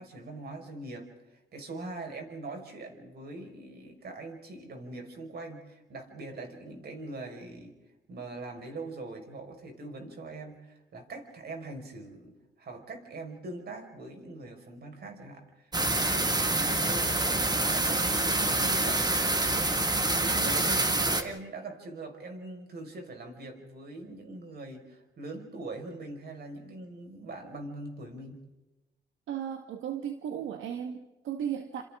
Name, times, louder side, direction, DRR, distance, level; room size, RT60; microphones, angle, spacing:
voice 1, 0.0-7.8 8.1-17.1 17.7-19.1 20.2-28.4, right 2 dB, 55° right, 4 dB, 5.1 m, -42 dB
sound 1, 15.7-21.2, right 2 dB, 20° right, 1.9 m, -26 dB
voice 2, 29.3-31.8, right 9 dB, 80° right, 5 dB, 1.6 m, -35 dB
29.5 x 27.0 x 3.7 m, 1.0 s
cardioid pair, 90°, 20 cm